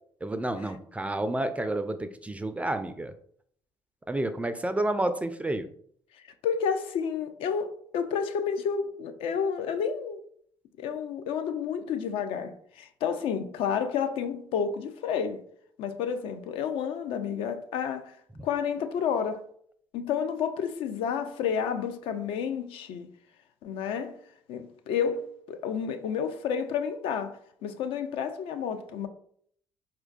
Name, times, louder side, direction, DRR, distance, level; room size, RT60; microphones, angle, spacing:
voice 1, 0.2-3.1 4.1-5.7, right 1 dB, 15° right, 0.3 m, -30 dB
voice 2, 6.1-10.2 10.8-15.4 15.8-18.2 18.4-19.5 19.9-23.1 23.6-24.2 24.5-29.1, left 7 dB, 60° left, 0.4 m, -30 dB
4.3 x 2.2 x 2.4 m
hypercardioid pair, 50°, 10 cm